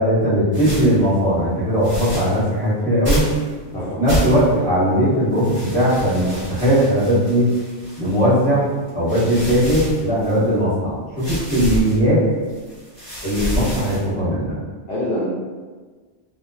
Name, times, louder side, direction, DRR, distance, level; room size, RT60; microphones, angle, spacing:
voice 1, 0.0-3.3 3.7-7.5 8.0-12.2 13.2-14.6, equal, 5° right, -14 dB, 1.0 m, -19 dB
sound 1, 0.5-1.0 1.8-2.4 3.0-3.5 4.0-4.6 5.3-8.3 8.9-10.5 11.2-11.9 12.5-14.1, equal, 30° right, 1.1 m, -28 dB
voice 2, 14.9-15.3, left 1 dB, 60° left, -8 dB, 0.8 m, -26 dB
2.3 x 2.3 x 2.2 m, 1.4 s
omnidirectional pair, 1.2 m